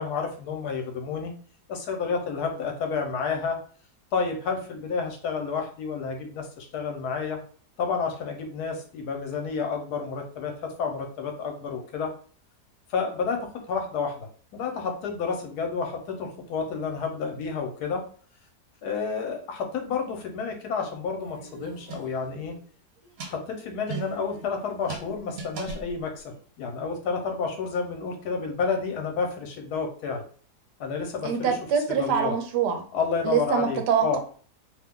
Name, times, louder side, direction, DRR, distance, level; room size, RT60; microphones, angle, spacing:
voice 1, 0.0-1.3 1.7-3.6 4.1-7.4 7.8-12.1 12.9-18.1 18.8-22.5 23.2-30.2 30.8-31.6 31.9-32.4 32.9-34.2, left 5 dB, 75° left, 3 dB, 1.2 m, -30 dB
sound 1, 21.2-22.6 23.0-26.4, right 5 dB, 65° right, 1.2 m, -39 dB
voice 2, 31.2-32.8 33.2-34.2, right 7 dB, 85° right, 5 dB, 1.2 m, -24 dB
2.9 x 2.2 x 3.6 m, 0.44 s
omnidirectional pair, 1.7 m